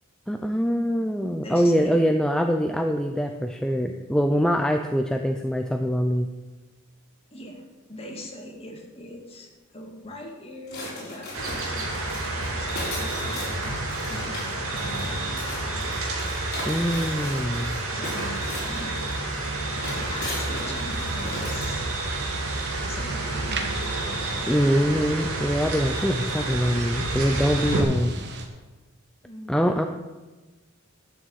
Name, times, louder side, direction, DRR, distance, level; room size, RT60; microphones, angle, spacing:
voice 1, 0.3-6.3 16.6-17.8 24.5-28.2 29.5-29.8, equal, 5° left, 5 dB, 0.4 m, -24 dB
voice 2, 1.4-2.2 7.3-13.7 14.1-15.3 15.7-16.0 17.9-18.4 18.7-19.0 19.5-21.9 22.9-24.7 29.2-29.8, left 1 dB, 30° left, 0 dB, 2.2 m, -41 dB
sound 1, 10.7-21.8, left 1 dB, 50° left, 4.5 m, -37 dB
sound 2, 11.3-27.8, right 2 dB, 75° right, 2.5 m, -30 dB
sound 3, 19.6-28.5, right 3 dB, 50° right, 1.4 m, -38 dB
11.0 x 6.3 x 8.2 m, 1.2 s
head